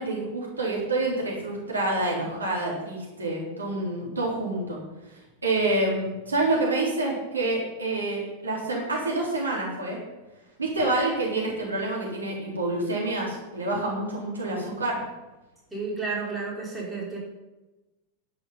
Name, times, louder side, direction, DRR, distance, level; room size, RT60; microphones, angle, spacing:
voice 1, 0.0-4.8 5.4-10.0 10.6-15.0, right 2 dB, 75° right, -3 dB, 3.6 m, -27 dB
voice 2, 15.7-17.2, right 4 dB, 10° right, -5 dB, 5.3 m, -31 dB
11.0 x 10.5 x 5.6 m, 1.1 s
figure-of-eight pair, 90°, 0 cm